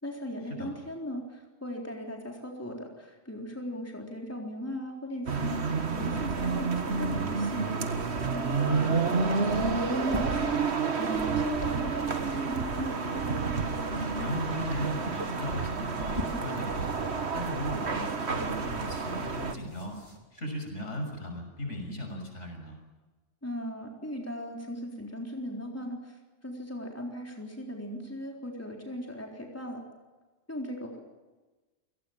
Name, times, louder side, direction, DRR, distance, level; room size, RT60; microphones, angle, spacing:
voice 1, 0.0-7.8 8.3-10.6 11.0-13.0 23.4-29.8 30.5-31.0, equal, 10° left, 0 dB, 3.9 m, -38 dB
sound 1, 5.3-19.5, right 4 dB, 60° right, 1.9 m, -30 dB
sound 2, 6.5-13.0 13.3-20.2, right 1 dB, 25° right, 3.8 m, -45 dB
voice 2, 14.2-16.9 17.3-20.0 20.3-22.8, equal, 70° left, 3 dB, 6.7 m, -36 dB
28.5 x 18.5 x 7.4 m, 1.2 s
omnidirectional pair, 1.3 m